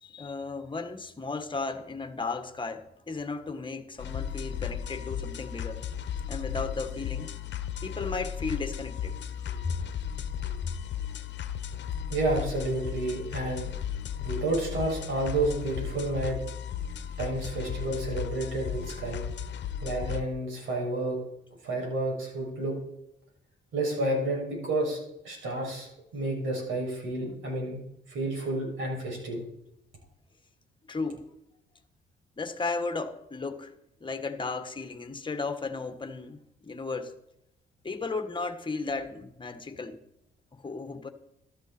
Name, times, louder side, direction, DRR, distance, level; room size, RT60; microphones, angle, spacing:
voice 1, 0.0-5.8 6.2-7.3 7.8-9.2 9.6-9.7 10.6-10.7 30.9-31.2 32.4-33.7 34.0-37.1 37.8-40.0 40.5-41.1, left 3 dB, 25° left, 1.6 m, -35 dB
sound 1, 4.0-20.2, left 9 dB, 65° left, 1.1 m, -35 dB
voice 2, 12.1-13.7 14.2-16.4 17.2-19.2 19.8-21.2 21.6-22.7 23.7-25.0 25.2-27.8 28.1-29.4, right 2 dB, 80° right, 6.8 m, -30 dB
14.0 x 13.0 x 4.4 m
cardioid pair, 90°, 20 cm